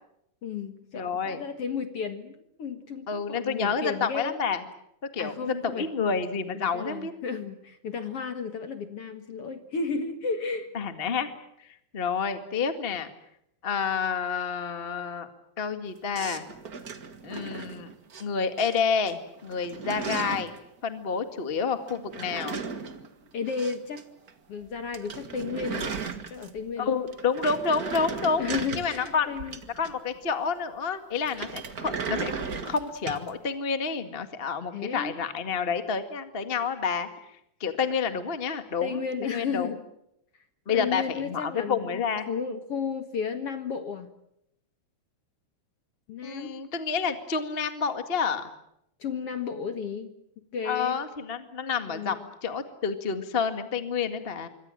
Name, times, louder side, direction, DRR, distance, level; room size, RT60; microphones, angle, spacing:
voice 1, 0.4-4.4 5.2-5.9 6.5-10.7 23.3-24.0 24.5-25.9 26.3-27.1 28.4-29.6 34.7-35.2 38.8-39.8 40.7-44.1 46.1-46.6 49.0-50.1 50.5-51.0 51.9-52.3, left 5 dB, 50° left, 8 dB, 1.9 m, -33 dB
voice 2, 0.9-1.4 3.1-4.6 5.1-7.1 10.7-11.3 11.9-13.1 13.6-15.3 15.6-16.5 17.2-17.9 18.2-20.5 20.8-22.6 26.8-28.4 28.7-29.3 29.8-32.3 32.6-37.1 37.6-39.7 40.7-42.3 46.2-48.5 50.6-54.5, left 5 dB, 35° left, 8 dB, 0.8 m, -29 dB
sound 1, 16.1-18.2 18.6-19.1 19.4-20.6 21.9-24.0 24.3-24.4 24.7-24.8 24.9-26.7 27.1-30.2 31.2-33.3, right 5 dB, 55° right, 0.9 m, -36 dB
26.5 x 24.0 x 7.5 m, 0.77 s
omnidirectional pair, 4.5 m